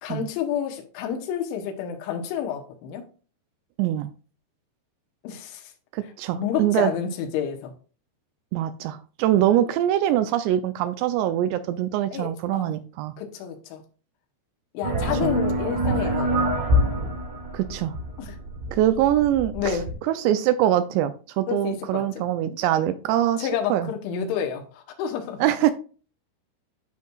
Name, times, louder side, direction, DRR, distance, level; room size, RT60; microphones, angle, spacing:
voice 1, 0.0-3.0 5.2-5.7 6.3-7.7 12.1-12.7 13.2-13.8 14.7-16.3 18.2-18.4 19.5-19.9 21.5-22.0 23.4-25.5, left 8 dB, 85° left, 3.5 m, -29 dB
voice 2, 5.9-6.9 8.5-13.1 15.2-15.3 17.5-17.9 18.7-19.8 20.1-23.9 25.4-25.7, right 12 dB, 85° right, 2.5 m, -23 dB
sound 1, 14.8-19.9, equal, 65° right, 4.9 m, -25 dB
12.0 x 4.6 x 2.3 m
omnidirectional pair, 5.3 m